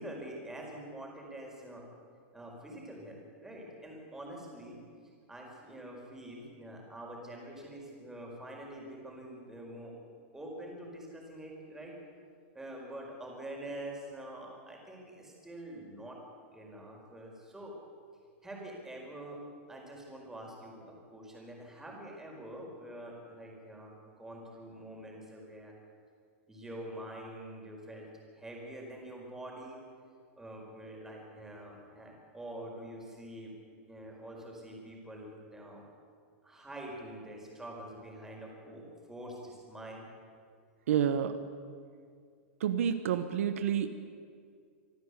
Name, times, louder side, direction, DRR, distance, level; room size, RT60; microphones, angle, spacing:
voice 1, 0.0-1.9 2.3-4.8 5.3-10.0 10.3-12.0 12.5-16.2 16.5-17.7 18.4-19.4 19.7-25.7 26.5-28.1 28.4-29.8 30.4-33.5 33.9-35.8 36.4-40.0, right 1 dB, 5° right, -1 dB, 4.9 m, -45 dB
voice 2, 40.9-41.4 42.6-43.9, right 9 dB, 75° right, 10 dB, 1.3 m, -29 dB
25.0 x 13.0 x 8.3 m, 2.1 s
supercardioid pair, 145°, 7 cm